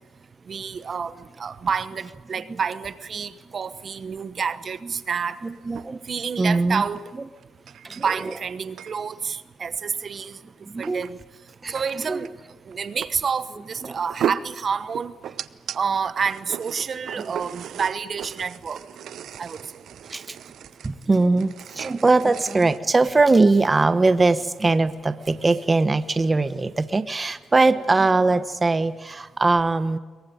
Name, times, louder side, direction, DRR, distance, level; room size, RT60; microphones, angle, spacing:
voice 1, 0.5-5.4 6.1-7.1 8.0-10.4 10.8-11.2 11.7-12.3 12.7-15.2 15.7-18.8 19.4-19.6, right 6 dB, 50° right, 14 dB, 1.1 m, -28 dB
voice 2, 5.4-6.0 6.4-6.8 7.8-8.3 10.6-11.1 11.6-12.2 13.8-14.0 17.2-17.3 20.1-20.4 20.8-30.0, right 3 dB, 25° right, 12 dB, 1.0 m, -21 dB
sound 1, 5.4-5.9 6.5-6.6 7.0-7.1 7.4-9.0 10.1-10.2 10.8-11.2 11.5-12.0 12.3-12.4 12.7-13.1 13.7-15.8 16.2-22.8, right 9 dB, 70° right, 0.8 m, -36 dB
22.5 x 22.0 x 9.2 m, 1.3 s
cardioid pair, 90°, 0 cm